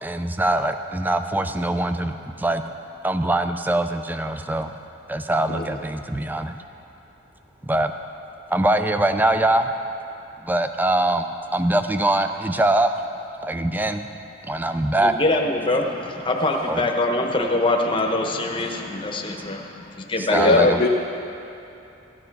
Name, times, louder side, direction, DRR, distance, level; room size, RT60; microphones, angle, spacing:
voice 1, 0.0-2.6 3.0-4.7 5.1-6.6 7.6-7.9 8.5-9.7 10.4-12.9 13.4-14.1 14.4-15.1 16.7-16.9 19.3-19.4 20.2-20.8, right 1 dB, 10° right, 8 dB, 0.3 m, -23 dB
voice 2, 15.0-20.7, left 2 dB, 25° left, 2 dB, 0.9 m, -24 dB
voice 3, 20.3-20.9, left 3 dB, 45° left, 0 dB, 0.5 m, -19 dB
14.0 x 9.9 x 4.7 m, 2.8 s
head